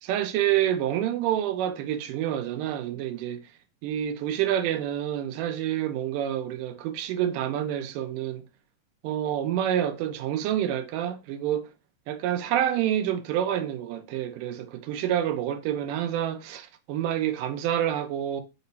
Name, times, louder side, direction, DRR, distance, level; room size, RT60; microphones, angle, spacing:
voice 1, 0.0-3.4 3.8-8.5 9.0-11.7 12.1-18.4, right 11 dB, 90° right, 2.2 m, -28 dB
5.5 x 2.1 x 3.9 m
omnidirectional pair, 3.7 m